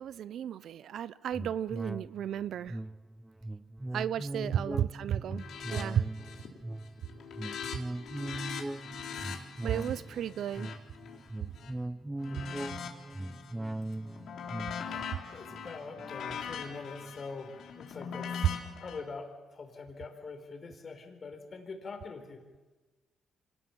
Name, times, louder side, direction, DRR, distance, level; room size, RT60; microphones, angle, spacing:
voice 1, 0.0-2.8 3.9-5.5 5.7-6.1 9.6-10.7, right 10 dB, 70° right, 0.6 m, -33 dB
sound 1, 1.3-17.1 17.5-17.6, right 1 dB, 10° right, 0.8 m, -40 dB
sound 2, 5.4-5.8 6.1-6.6 6.9-11.7 12.2-13.5 13.9-19.0, left 7 dB, 70° left, 3.8 m, -41 dB
voice 2, 12.3-12.6 14.8-22.4, left 4 dB, 40° left, 4.4 m, -44 dB
25.5 x 19.0 x 7.3 m
cardioid pair, 90°, 0 cm